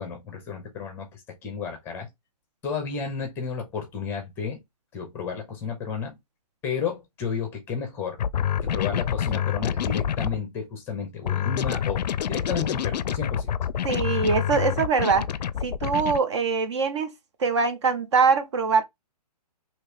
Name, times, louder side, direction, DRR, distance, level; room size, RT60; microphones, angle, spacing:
voice 1, 0.0-2.1 2.6-4.6 4.9-6.2 6.6-8.2 8.6-13.5, left 6 dB, 10° left, 0.7 m, -32 dB
sound 1, 8.2-10.4 11.2-16.2, left 9 dB, 85° left, 0.4 m, -27 dB
voice 2, 13.8-15.3 15.6-17.1 17.4-18.8, right 5 dB, 45° right, 0.6 m, -23 dB
2.9 x 2.8 x 3.4 m
hypercardioid pair, 165°, 21 cm